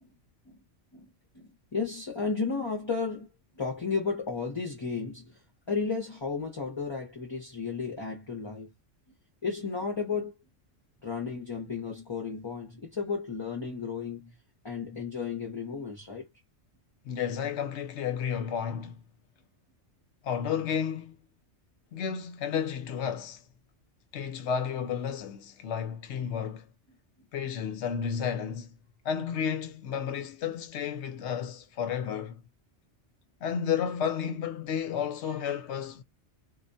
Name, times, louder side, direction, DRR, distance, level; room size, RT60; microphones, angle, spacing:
voice 1, 0.9-3.3 3.6-5.4 5.7-8.7 9.4-10.3 11.0-14.4 14.6-16.3, left 5 dB, 30° left, 0.6 m, -33 dB
voice 2, 17.0-19.0 20.2-21.2 21.9-23.4 24.1-26.7 27.3-28.8 29.0-32.4 33.4-36.0, left 8 dB, 70° left, 0.8 m, -32 dB
2.3 x 2.2 x 2.5 m
omnidirectional pair, 1.3 m